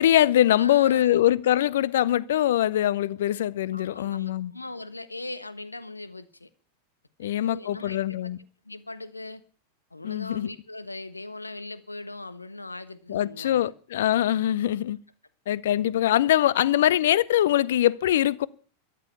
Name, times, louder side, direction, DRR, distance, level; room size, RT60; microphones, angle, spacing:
voice 1, 0.0-4.5 7.2-8.4 10.0-10.5 13.1-15.0 15.5-18.5, left 12 dB, 60° left, 0.6 m, -23 dB
voice 2, 0.6-1.2 3.7-6.5 7.2-8.3 8.6-9.4 9.9-13.7, left 2 dB, 85° left, 1.2 m, -40 dB
13.5 x 11.0 x 6.8 m
figure-of-eight pair, 90°, 0 cm